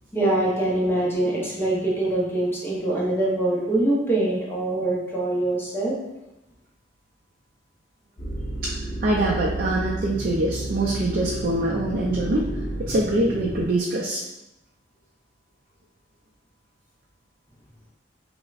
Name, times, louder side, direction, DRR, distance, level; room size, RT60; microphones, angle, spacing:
voice 1, 0.1-6.0, right 1 dB, 10° left, -5 dB, 0.7 m, -24 dB
sound 1, 8.2-13.7, right 1 dB, 70° left, 0.8 m, -31 dB
voice 2, 8.6-12.5 12.8-14.2, right 1 dB, 50° right, -3 dB, 0.4 m, -24 dB
5.6 x 2.1 x 2.4 m, 0.94 s
head